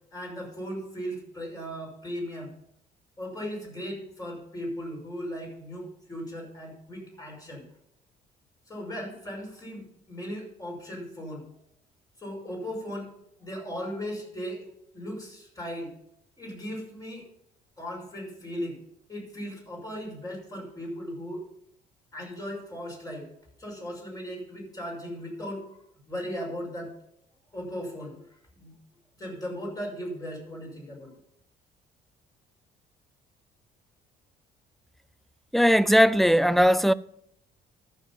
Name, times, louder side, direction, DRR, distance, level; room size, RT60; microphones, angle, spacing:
voice 1, 0.1-2.5 3.2-7.6 8.7-11.5 12.2-14.7 14.9-15.9 16.4-17.3 17.8-18.8 19.1-21.4 22.1-23.3 23.6-26.9 27.5-28.7 29.2-31.2, equal, 20° left, 6.1 m, -37 dB
voice 2, 35.5-36.9, equal, ahead, 0.4 m, -19 dB
14.0 x 7.3 x 5.5 m
cardioid pair, 110°, 17 cm